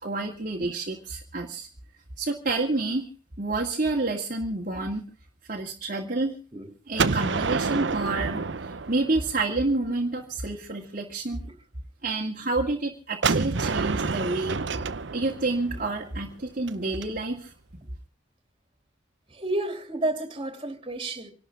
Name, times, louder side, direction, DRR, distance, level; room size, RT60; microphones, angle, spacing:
voice 1, 0.0-1.7 2.2-3.1 3.4-5.0 5.5-6.3 6.9-8.4 8.9-11.4 12.0-14.6 15.1-17.5, right 2 dB, 45° right, 2.0 m, -28 dB
Gunshot gunfire, 7.0-9.8 13.2-17.0, right 4 dB, 60° right, 0.8 m, -28 dB
voice 2, 19.4-21.3, right 2 dB, 25° right, 2.9 m, -31 dB
27.5 x 12.0 x 3.6 m
head